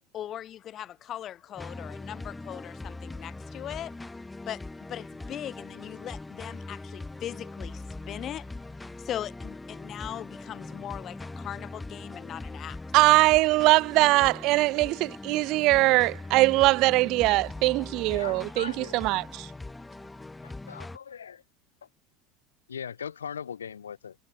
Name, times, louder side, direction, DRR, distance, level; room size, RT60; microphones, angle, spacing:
voice 1, 0.1-4.0 4.5-4.6 4.9-8.5 9.0-13.1, left 11 dB, 45° left, 0.7 m, -39 dB
sound 1, 1.6-21.0, left 2 dB, 10° left, 0.8 m, -41 dB
voice 2, 12.9-19.5, right 21 dB, 55° right, 0.5 m, -22 dB
voice 3, 18.1-19.0 20.7-21.4 22.7-24.1, left 7 dB, 85° left, 1.1 m, -39 dB
hypercardioid pair, 80°, 0 cm